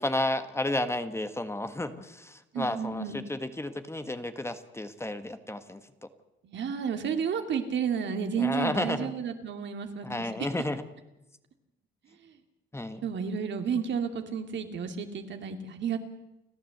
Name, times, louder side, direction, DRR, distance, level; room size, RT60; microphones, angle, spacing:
voice 1, 0.0-5.8 8.4-9.1 10.0-10.8 12.7-13.0, left 1 dB, 15° left, 10 dB, 1.5 m, -32 dB
voice 2, 2.5-3.2 6.4-10.3 13.0-16.0, right 6 dB, 65° right, 6 dB, 2.6 m, -31 dB
30.0 x 11.0 x 8.0 m, 0.93 s
cardioid pair, 90°, 20 cm